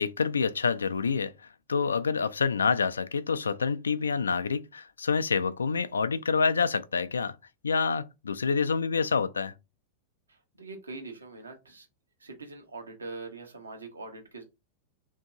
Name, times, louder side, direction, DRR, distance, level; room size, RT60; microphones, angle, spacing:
voice 1, 0.0-1.3 1.7-7.4 7.6-9.5, left 5 dB, 75° left, 0.3 m, -27 dB
voice 2, 10.3-11.9 12.2-14.4, right 3 dB, 75° right, 0.9 m, -43 dB
2.9 x 2.6 x 3.6 m
figure-of-eight pair, 90°, 0 cm